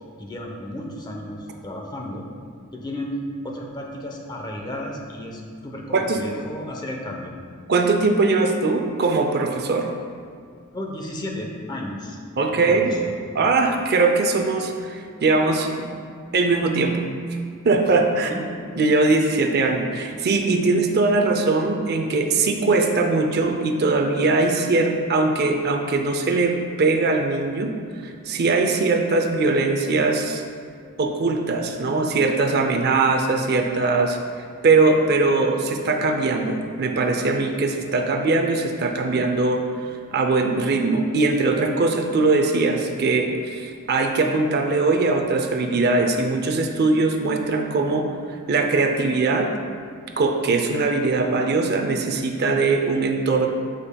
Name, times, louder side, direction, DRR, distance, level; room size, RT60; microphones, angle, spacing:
voice 1, 0.2-2.3 2.7-3.2 3.4-7.4 10.7-12.2 12.5-13.1 18.3-18.5, left 1 dB, 20° left, 0 dB, 0.8 m, -33 dB
voice 2, 7.7-9.9 12.4-12.9 13.3-15.8 16.3-17.4 17.6-18.3 18.8-27.7 28.0-30.4 31.0-49.5 50.2-53.5, right 3 dB, 45° right, 3 dB, 0.5 m, -21 dB
12.5 x 5.1 x 2.2 m, 2.1 s
head